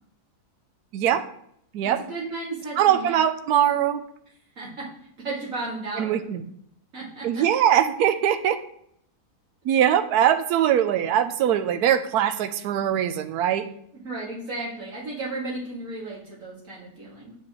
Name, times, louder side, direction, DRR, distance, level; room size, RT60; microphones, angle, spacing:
voice 1, 0.9-1.2 1.7-2.0 2.8-4.0 6.0-6.4 7.2-8.6 9.6-13.6, right 10 dB, 80° right, 9 dB, 1.1 m, -22 dB
voice 2, 2.1-3.2 4.6-4.9 5.2-6.2 6.9-7.4 14.0-17.3, right 2 dB, 55° right, -5 dB, 2.8 m, -34 dB
8.2 x 5.9 x 3.1 m, 0.70 s
omnidirectional pair, 1.7 m